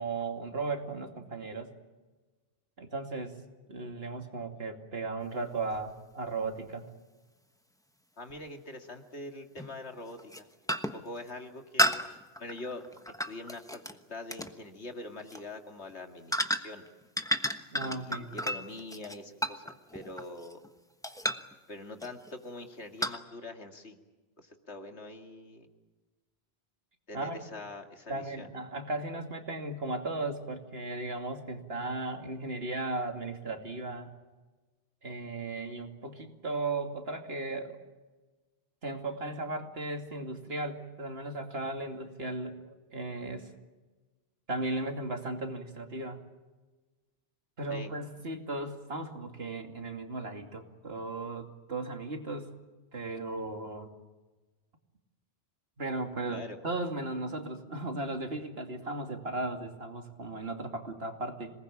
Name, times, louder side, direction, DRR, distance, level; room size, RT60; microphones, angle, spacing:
voice 1, 0.0-1.7 2.8-3.3 3.7-6.8 17.7-18.3 27.1-27.4 28.1-34.1 35.0-37.8 38.8-43.5 44.5-46.2 47.6-52.5 52.9-53.9 55.8-61.5, right 2 dB, 65° right, 4 dB, 2.8 m, -36 dB
sound 1, 5.7-5.8 8.3-8.4 9.6-9.8 10.2-10.4 10.7-11.1 11.8-13.9 14.3-14.5 15.2-15.4 16.3-16.9 17.2-20.7 21.0-21.5 22.0-22.3 23.0-23.2, equal, 5° left, 1.2 m, -32 dB
voice 2, 8.2-12.0 12.4-12.8 13.2-16.8 17.8-20.6 21.7-24.0 24.4-25.7 27.1-28.5 47.7-47.9 56.3-56.6, left 2 dB, 90° left, 4 dB, 2.6 m, -44 dB
26.5 x 20.0 x 8.7 m, 1.2 s
omnidirectional pair, 1.1 m